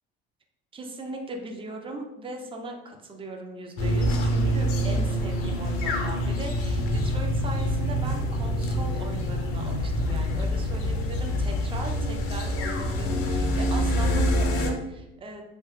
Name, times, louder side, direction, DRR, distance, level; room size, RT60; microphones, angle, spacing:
voice 1, 0.7-15.4, right 2 dB, 15° right, 2 dB, 0.4 m, -38 dB
sound 1, 3.8-14.7, equal, 40° left, 0.6 m, -26 dB
2.9 x 2.2 x 3.1 m, 0.91 s
figure-of-eight pair, 60°, 34 cm